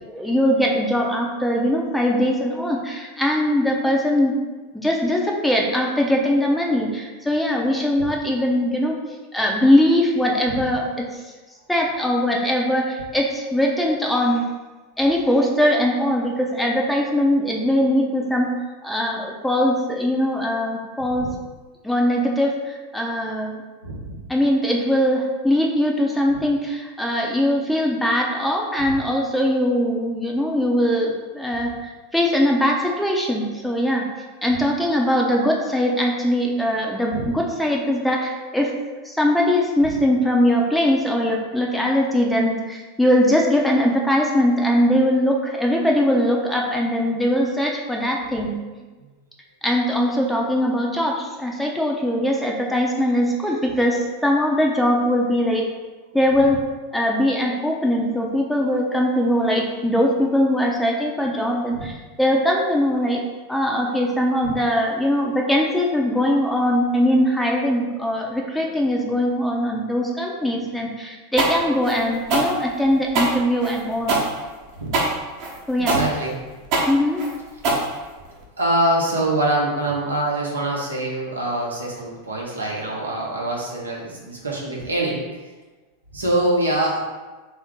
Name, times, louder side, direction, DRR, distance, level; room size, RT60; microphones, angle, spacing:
voice 1, 0.0-4.3 4.7-9.0 9.3-11.2 11.7-14.4 15.0-18.6 18.8-21.3 21.8-23.6 24.3-34.1 34.4-38.7 39.0-48.6 49.6-55.7 56.1-56.6 56.9-63.2 63.5-74.2 75.7-76.0 76.9-77.2, equal, 5° left, -1 dB, 0.6 m, -21 dB
voice 2, 23.8-24.2 37.1-37.3 61.7-61.9 64.4-64.5 74.8-75.0 75.9-76.3 78.6-85.2 86.1-87.0, right 1 dB, 85° right, -3 dB, 0.9 m, -24 dB
sound 1, 71.4-78.4, right 2 dB, 50° right, 1.0 m, -23 dB
3.5 x 2.7 x 3.6 m, 1.3 s
figure-of-eight pair, 90°, 0 cm